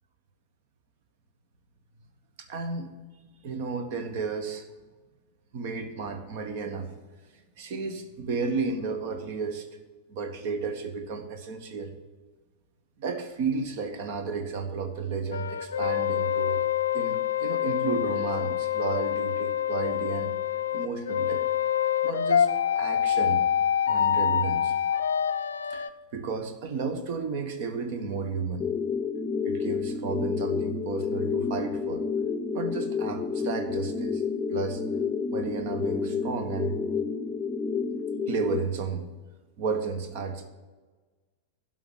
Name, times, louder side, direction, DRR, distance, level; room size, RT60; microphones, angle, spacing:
voice 1, 2.4-2.9 3.4-4.6 5.5-6.9 7.6-9.7 10.1-11.9 13.0-16.6 16.9-20.3 20.7-21.4 22.0-22.5 22.7-23.4 23.8-24.7 25.7-28.7 29.4-32.1 32.5-34.2 34.5-34.8 35.3-36.8 38.3-39.0 39.6-40.5, right 4 dB, 50° right, 8 dB, 1.4 m, -32 dB
sound 1, 15.3-25.9, left 9 dB, 65° left, 0.4 m, -26 dB
sound 2, 28.6-38.6, left 5 dB, 20° left, 0.8 m, -30 dB
11.0 x 6.0 x 8.7 m, 1.3 s
figure-of-eight pair, 90°, 0 cm